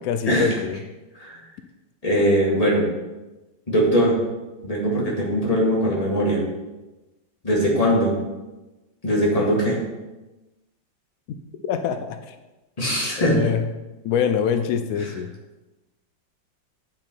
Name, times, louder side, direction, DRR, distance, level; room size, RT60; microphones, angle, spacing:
voice 1, 0.0-0.8 11.6-12.3 13.2-13.7 14.0-15.3, left 8 dB, 90° left, 8 dB, 0.7 m, -24 dB
voice 2, 2.0-2.8 3.7-4.2 4.6-6.4 7.4-8.2 9.0-9.8 12.8-13.5 15.0-15.1, equal, 20° left, -4 dB, 2.0 m, -21 dB
8.7 x 5.8 x 4.4 m, 1.1 s
omnidirectional pair, 2.0 m